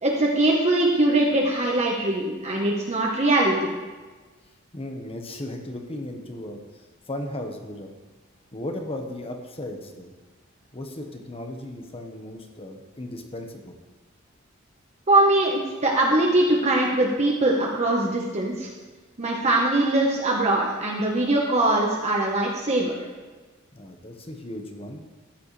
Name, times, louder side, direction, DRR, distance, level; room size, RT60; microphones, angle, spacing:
voice 1, 0.0-3.7 15.1-18.7 19.2-22.9, right 2 dB, 35° right, -2 dB, 1.3 m, -22 dB
voice 2, 4.7-7.9 8.5-10.1 10.7-13.7 23.7-25.0, left 1 dB, 30° left, 3 dB, 1.3 m, -36 dB
14.0 x 10.0 x 3.4 m, 1.3 s
head